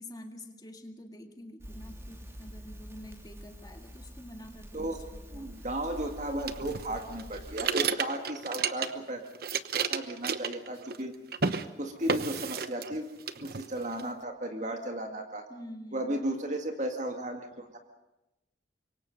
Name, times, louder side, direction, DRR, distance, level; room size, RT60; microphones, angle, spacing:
voice 1, 0.0-5.6 15.5-16.1, left 1 dB, 20° left, 4 dB, 2.2 m, -47 dB
Crackle, 1.6-7.6, equal, 15° right, 3.1 m, -46 dB
voice 2, 5.3-9.2 9.7-11.1 11.8-13.1 13.4-15.4 15.9-17.8, right 1 dB, 40° right, 4 dB, 2.0 m, -35 dB
sound 1, 6.5-9.1 9.4-11.1 11.3-11.7 12.1-13.0 13.3-14.0, right 6 dB, 55° right, 1.0 m, -32 dB
26.0 x 23.0 x 5.3 m, 0.96 s
head